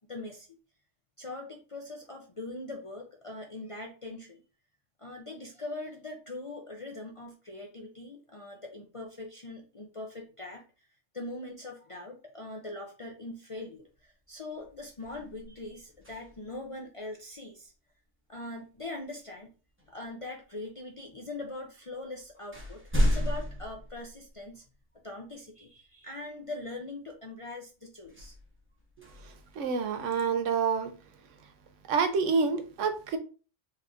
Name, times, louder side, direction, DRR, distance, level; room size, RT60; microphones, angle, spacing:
voice 1, 0.1-0.5 1.2-4.4 5.0-10.6 11.1-17.7 18.3-19.5 19.9-24.6 25.0-28.4, left 2 dB, 45° left, 0 dB, 0.4 m, -42 dB
sound 1, 13.9-14.2 14.6-16.7 18.8-19.0 19.8-20.5 21.4-21.5 21.9-24.8 25.3-25.4 28.0-30.2, equal, 10° right, 0.7 m, -34 dB
voice 2, 29.2-30.9 31.9-33.2, right 5 dB, 85° right, 8 dB, 1.0 m, -28 dB
4.2 x 3.5 x 2.5 m, 0.35 s
omnidirectional pair, 1.2 m